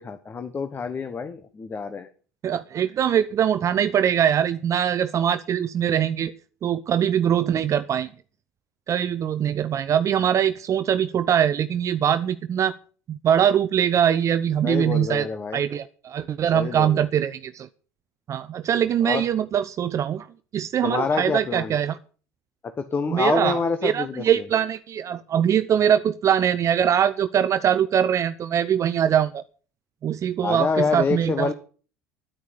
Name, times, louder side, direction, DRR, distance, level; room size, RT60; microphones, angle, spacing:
voice 1, 0.0-2.1 14.6-15.6 16.5-17.0 19.0-19.2 20.8-21.7 22.8-24.2 30.4-31.5, left 5 dB, 30° left, 9 dB, 1.3 m, -26 dB
voice 2, 2.4-6.3 6.6-8.1 8.9-12.7 13.1-15.3 15.5-17.7 18.3-20.3 20.5-22.0 23.1-29.4 30.0-31.5, right 9 dB, 40° right, 13 dB, 0.7 m, -22 dB
10.5 x 9.4 x 8.1 m, 0.40 s
hypercardioid pair, 80°, 8 cm